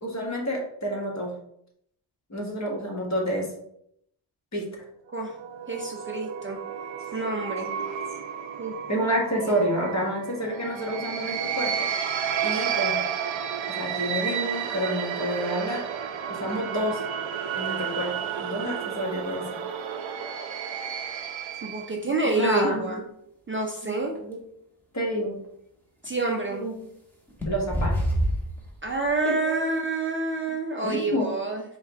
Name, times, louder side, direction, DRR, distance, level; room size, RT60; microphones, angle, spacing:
voice 1, 0.0-1.3 2.3-3.5 4.5-4.7 8.9-11.9 12.4-13.0 13.8-15.8 16.3-17.0 17.6-19.4 21.9-23.0 23.8-24.4 24.9-25.4 26.5-26.8 27.5-27.9 29.2-29.6 30.8-31.3, equal, 35° left, -1 dB, 1.4 m, -29 dB
sound 1, 5.1-21.9, right 8 dB, 75° right, 0.6 m, -32 dB
voice 2, 5.7-6.6 7.1-7.8 8.6-8.7 9.3-9.6 21.6-23.0 23.5-24.2 26.0-26.6 28.8-31.6, right 2 dB, 25° right, 1 dB, 0.5 m, -28 dB
sound 2, 21.9-22.0 24.1-24.2 26.0-26.1 27.3-29.1, equal, 5° left, 1.1 m, -26 dB
4.8 x 2.4 x 4.3 m, 0.74 s
wide cardioid pair, 110°, 46 cm